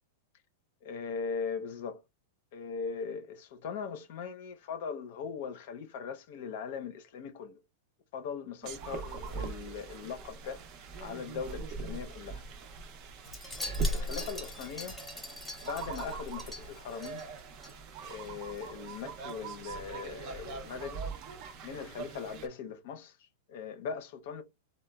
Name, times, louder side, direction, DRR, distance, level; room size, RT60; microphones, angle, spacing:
voice 1, 0.8-2.0 2.5-7.6 8.1-10.6 11.0-12.4 13.9-15.0 15.6-17.2 18.0-21.0 21.6-24.4, left 6 dB, 55° left, 0.5 m, -40 dB
sound 1, 8.6-22.5, right 3 dB, 35° right, 0.5 m, -40 dB
Wind chime, 13.2-17.7 18.0-18.3 18.6-18.7, left 1 dB, 5° left, 0.8 m, -43 dB
3.9 x 2.1 x 2.2 m
supercardioid pair, 160°, 0 cm